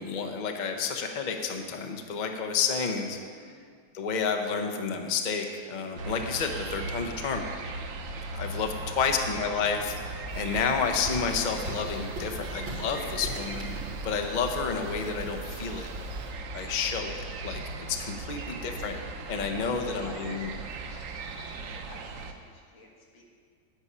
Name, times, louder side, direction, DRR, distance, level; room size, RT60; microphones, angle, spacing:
voice 1, 0.0-3.2 3.9-7.4 8.3-13.7 14.0-15.9 16.5-19.0 19.3-20.5, left 5 dB, 60° left, 4 dB, 0.4 m, -30 dB
voice 2, 3.4-3.7 8.8-9.3 18.4-18.7 19.8-20.7 21.5-23.3, left 1 dB, 85° left, -2 dB, 2.4 m, -50 dB
sound 1, 6.0-22.3, right 3 dB, 60° right, 0.8 m, -38 dB
sound 2, 10.3-16.3, right 1 dB, 90° right, 2.8 m, -41 dB
9.8 x 8.7 x 5.5 m, 2.1 s
omnidirectional pair, 2.1 m